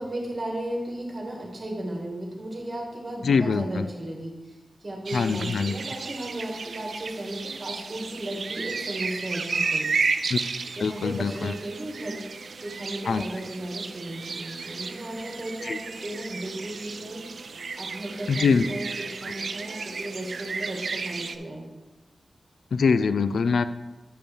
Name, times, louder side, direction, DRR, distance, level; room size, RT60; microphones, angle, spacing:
voice 1, 0.0-4.3 4.8-9.9 10.2-10.4 10.8-12.3 12.6-17.2 17.8-21.6, right 1 dB, 35° right, 0 dB, 2.0 m, -35 dB
voice 2, 3.2-3.9 5.1-5.8 10.3-10.4 10.8-11.5 13.1-13.2 15.6-15.8 18.3-18.7 22.7-23.6, left 5 dB, 90° left, 12 dB, 0.3 m, -23 dB
sound 1, 5.1-21.4, right 4 dB, 70° right, 0.4 m, -33 dB
8.8 x 5.2 x 4.7 m, 1.1 s
wide cardioid pair, 110°, 0 cm